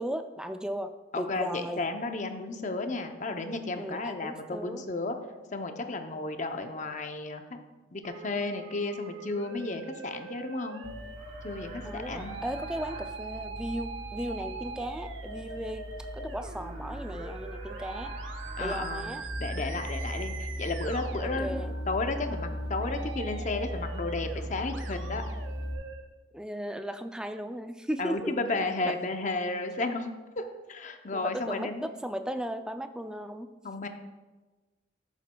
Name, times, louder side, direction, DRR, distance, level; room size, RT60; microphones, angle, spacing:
voice 1, 0.0-1.8 3.7-4.9 11.8-18.1 18.6-19.3 21.2-21.8 26.3-28.4 28.9-29.0 31.1-33.5, equal, 5° right, 7 dB, 0.3 m, -36 dB
voice 2, 1.1-5.1 5.5-7.4 7.9-10.8 11.4-12.3 18.6-19.1 19.4-25.2 28.0-31.8 33.6-33.9, left 3 dB, 40° left, 6 dB, 0.6 m, -33 dB
Musical instrument, 8.0-26.0, right 4 dB, 75° right, 0.8 m, -43 dB
Livestock farm animals working animals, 10.8-25.7, equal, 40° right, 1.6 m, -38 dB
13.5 x 7.1 x 2.3 m, 1.2 s
head